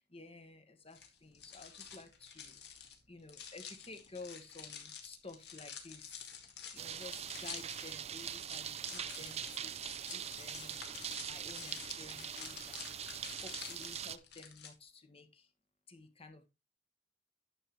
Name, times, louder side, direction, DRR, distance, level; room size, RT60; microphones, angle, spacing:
voice 1, 0.0-6.4 6.7-15.5 15.9-16.5, left 3 dB, 35° left, 1.5 m, -53 dB
sound 1, 0.9-14.7, left 7 dB, 65° left, 2.2 m, -50 dB
sound 2, 6.8-14.2, right 9 dB, 35° right, 0.5 m, -43 dB
11.0 x 7.3 x 3.1 m
head